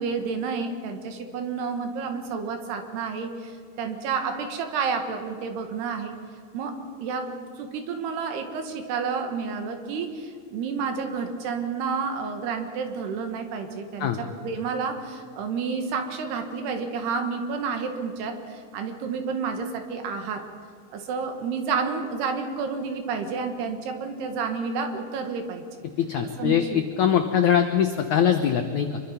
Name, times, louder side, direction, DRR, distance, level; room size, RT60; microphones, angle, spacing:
voice 1, 0.0-3.5 3.8-6.2 6.5-20.4 20.9-25.6 26.4-26.5, right 5 dB, 75° right, 6 dB, 3.7 m, -30 dB
voice 2, 26.0-29.0, left 8 dB, 80° left, 6 dB, 1.7 m, -22 dB
25.5 x 23.0 x 5.8 m, 2.3 s
omnidirectional pair, 4.9 m